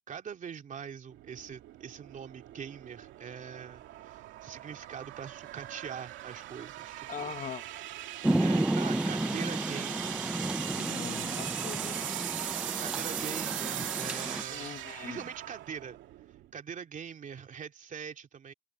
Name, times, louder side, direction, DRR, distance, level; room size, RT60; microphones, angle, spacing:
voice 1, 0.1-7.3 8.4-10.3 12.8-14.7 15.0-16.0 16.5-18.5, right 7 dB, 40° right, 2.8 m, -43 dB
sound 1, 1.1-16.5, right 14 dB, 85° right, 2.4 m, -40 dB
voice 2, 7.1-7.6 10.8-12.1 14.5-15.2, left 8 dB, 45° left, 1.1 m, -41 dB
Rain, 8.2-14.4, right 1 dB, 5° right, 0.4 m, -32 dB
cardioid pair, 120°, 19 cm